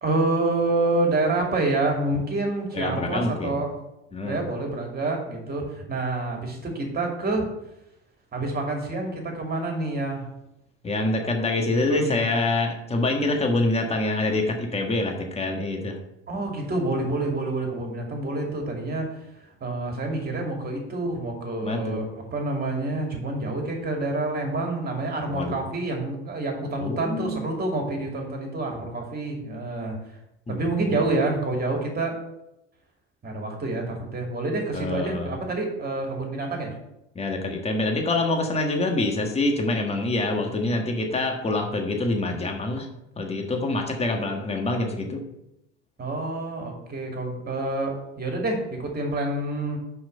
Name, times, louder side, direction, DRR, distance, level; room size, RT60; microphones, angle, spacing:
voice 1, 0.0-3.7 4.2-7.5 8.3-10.2 11.7-12.2 16.3-19.1 19.6-22.0 22.3-30.0 30.5-32.2 33.2-36.7 46.0-49.8, right 2 dB, 25° right, 1 dB, 2.6 m, -27 dB
voice 2, 2.7-3.6 4.1-4.4 10.8-16.0 21.6-22.0 25.3-25.6 26.8-27.4 30.5-31.0 34.7-35.4 37.1-42.9 43.2-45.2, left 2 dB, 15° left, 3 dB, 1.5 m, -26 dB
5.6 x 5.5 x 6.7 m, 0.85 s
hypercardioid pair, 80°, 35 cm